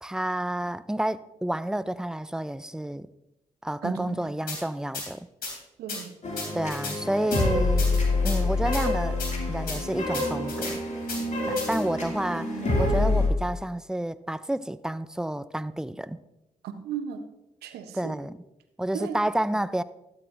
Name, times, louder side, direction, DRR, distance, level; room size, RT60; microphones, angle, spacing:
voice 1, 0.0-3.1 3.6-5.3 6.5-7.9 8.2-9.2 9.5-10.8 11.5-16.2 17.9-18.4 18.8-19.8, right 1 dB, 5° right, 0.5 m, -30 dB
voice 2, 3.8-4.3 5.8-6.1 16.6-17.2 17.6-18.1 18.9-19.2, right 8 dB, 80° right, 0.9 m, -35 dB
sound 1, 4.5-4.6 4.9-5.1 5.4-5.5 5.9-6.0 6.4-6.9 7.3-7.4 7.8-8.4 8.7-8.8 9.2-9.3 9.7-9.8 10.1-10.7 11.1-11.2 11.6-11.8, left 3 dB, 70° left, 3.1 m, -34 dB
sound 2, 6.2-13.3, left 2 dB, 45° left, 2.7 m, -26 dB
12.5 x 9.0 x 2.6 m
hypercardioid pair, 45°, 16 cm